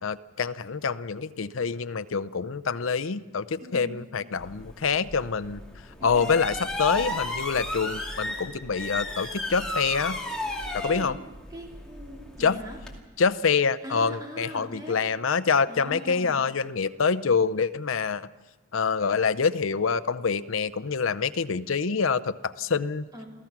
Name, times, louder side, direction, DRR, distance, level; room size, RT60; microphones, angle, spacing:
voice 1, 0.0-5.6 6.0-10.2 10.7-11.2 12.4-12.6 13.2-18.3 18.7-23.0, left 5 dB, 80° left, 14 dB, 0.6 m, -26 dB
voice 2, 3.6-4.1 6.0-6.4 10.9-11.2 11.5-12.8 13.8-15.1 15.7-16.5 23.1-23.3, equal, 20° right, -1 dB, 3.6 m, -41 dB
sound 1, 4.4-13.0, left 1 dB, 5° left, 2.3 m, -34 dB
27.5 x 16.0 x 6.0 m, 1.2 s
head